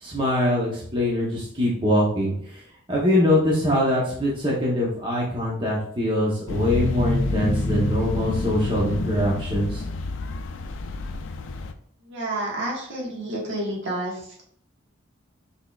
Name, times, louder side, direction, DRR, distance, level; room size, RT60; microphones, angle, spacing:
voice 1, 0.0-2.3 2.9-9.8, left 1 dB, 25° right, -5 dB, 0.9 m, -23 dB
sound 1, 6.5-11.7, left 3 dB, 70° left, 0.4 m, -27 dB
voice 2, 12.0-14.4, right 1 dB, 65° right, -3 dB, 1.6 m, -30 dB
6.2 x 3.5 x 2.4 m, 0.63 s
head